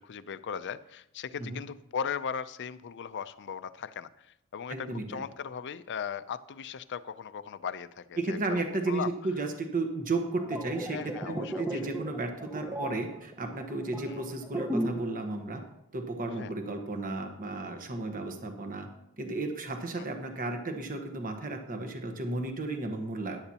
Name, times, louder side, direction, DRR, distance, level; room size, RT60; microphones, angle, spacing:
voice 1, 0.0-8.6 8.9-9.1 10.9-11.8 14.1-14.2 16.4-16.5, left 7 dB, 55° left, 14 dB, 0.5 m, -38 dB
voice 2, 4.7-5.2 8.2-15.6 15.9-18.9 19.2-23.4, right 2 dB, 40° right, 4 dB, 1.2 m, -33 dB
sound 1, 10.2-15.2 15.4-15.7, right 1 dB, 10° right, 0.7 m, -36 dB
13.5 x 11.0 x 2.9 m, 0.83 s
head